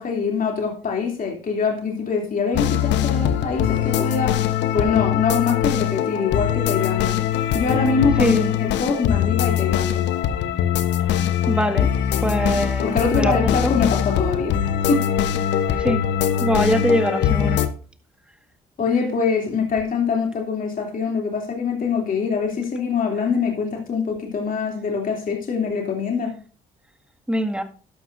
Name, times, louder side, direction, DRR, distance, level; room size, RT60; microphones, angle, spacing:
voice 1, 0.0-4.4 4.7-7.2 7.5-10.0 12.8-14.6 14.9-15.0 15.7-15.8 18.8-26.3, left 5 dB, 45° left, 2.8 m, -24 dB
sound 1, 2.5-17.7, left 10 dB, 70° left, 1.0 m, -22 dB
voice 2, 8.2-8.5 11.5-11.9 12.2-13.7 15.8-16.1 16.4-17.6 27.3-27.6, equal, 5° right, 1.9 m, -22 dB
12.5 x 11.5 x 2.6 m
hypercardioid pair, 50°, 19 cm